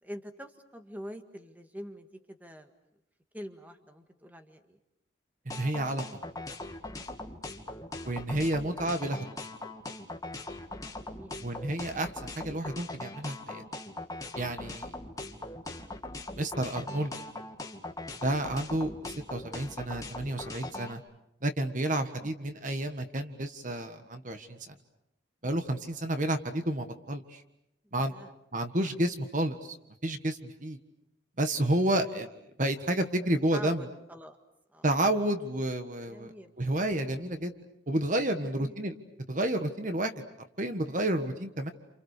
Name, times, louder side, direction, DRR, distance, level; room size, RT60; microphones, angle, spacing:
voice 1, 0.0-2.7 3.3-4.8 7.6-7.9 11.0-11.4 22.2-22.3 27.9-28.3 33.5-34.4 34.7-34.9 36.1-36.5 38.4-38.8, equal, 10° right, 5 dB, 1.7 m, -45 dB
voice 2, 5.4-6.1 8.0-9.3 11.4-13.6 14.3-14.9 16.4-17.1 18.2-21.0 21.4-24.7 25.4-27.4 27.9-28.1 28.5-29.8 30.0-30.8 31.4-33.9 34.8-37.5 37.9-38.9 39.3-40.1 40.6-41.7, right 1 dB, 40° right, 7 dB, 1.5 m, -30 dB
sound 1, 5.5-20.9, left 2 dB, 20° left, 2.1 m, -40 dB
30.0 x 28.5 x 6.7 m, 0.82 s
head